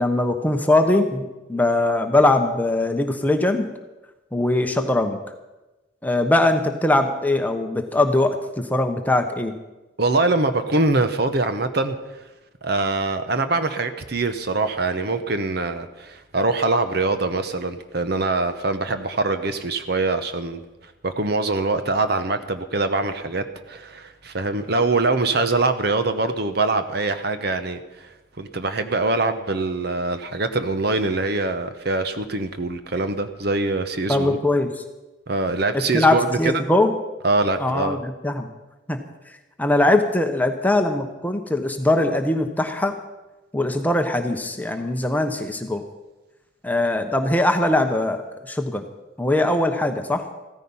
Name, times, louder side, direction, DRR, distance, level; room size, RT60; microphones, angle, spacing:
voice 1, 0.0-3.7 4.3-5.2 6.0-9.5 34.1-34.7 35.9-36.9 37.6-38.5 38.9-39.0 39.6-42.9 43.5-45.8 46.6-48.9 49.2-50.3, left 2 dB, 10° left, 6 dB, 1.0 m, -21 dB
voice 2, 10.0-12.0 12.6-20.6 21.0-28.1 28.4-34.4 35.3-36.5 37.2-38.0, right 3 dB, 55° right, 9 dB, 0.9 m, -23 dB
15.0 x 14.0 x 5.6 m, 1.1 s
head